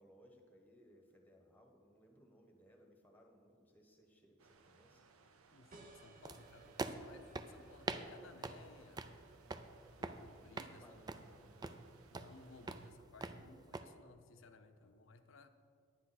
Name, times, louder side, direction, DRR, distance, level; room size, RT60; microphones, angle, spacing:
voice 1, 0.0-5.0 10.6-11.6 14.7-14.9, equal, 10° left, 1 dB, 1.2 m, -64 dB
sound 1, 4.4-12.9, right 4 dB, 85° right, 0.7 m, -67 dB
voice 2, 5.5-9.1 10.0-10.8 12.1-15.5, left 3 dB, 65° left, 9 dB, 0.6 m, -60 dB
sound 2, 5.7-10.9, right 3 dB, 40° right, 0.8 m, -64 dB
sound 3, 6.2-13.8, right 3 dB, 20° right, 0.3 m, -46 dB
10.0 x 9.9 x 4.2 m, 2.2 s
head